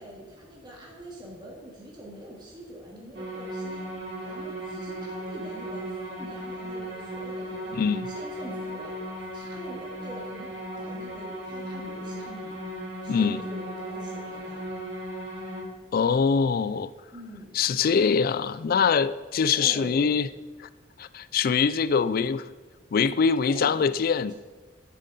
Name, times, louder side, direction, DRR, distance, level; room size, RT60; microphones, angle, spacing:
voice 1, 0.0-3.9 4.2-7.8 8.1-8.9 9.3-10.5 10.8-12.6 13.0-14.6 17.1-17.5 19.4-20.1 23.4-23.9, equal, 25° right, -4 dB, 2.0 m, -43 dB
sound 1, 3.1-15.6, right 1 dB, 65° right, 3.1 m, -36 dB
voice 2, 7.7-8.1 13.1-13.4 15.9-16.9 17.5-20.3 21.0-22.4 22.9-24.3, left 6 dB, 50° left, 16 dB, 0.3 m, -23 dB
10.0 x 7.5 x 4.1 m, 1.3 s
head